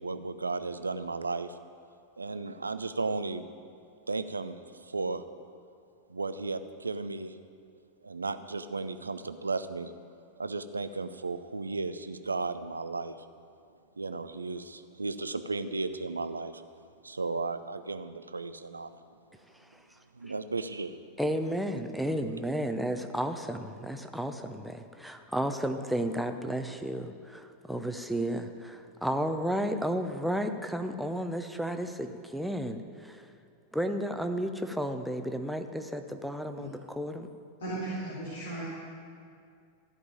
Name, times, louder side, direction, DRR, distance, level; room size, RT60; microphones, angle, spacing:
voice 1, 0.0-1.6 2.2-3.4 4.1-5.2 6.1-7.4 8.0-9.9 10.4-13.2 14.0-19.0 20.1-21.0, right 3 dB, 80° right, 11 dB, 0.5 m, -35 dB
voice 2, 21.2-33.3 33.7-37.3, equal, ahead, 6 dB, 0.7 m, -33 dB
voice 3, 37.6-38.6, right 2 dB, 65° left, -8 dB, 3.4 m, -36 dB
14.5 x 5.4 x 8.9 m, 2.3 s
figure-of-eight pair, 90°, 0 cm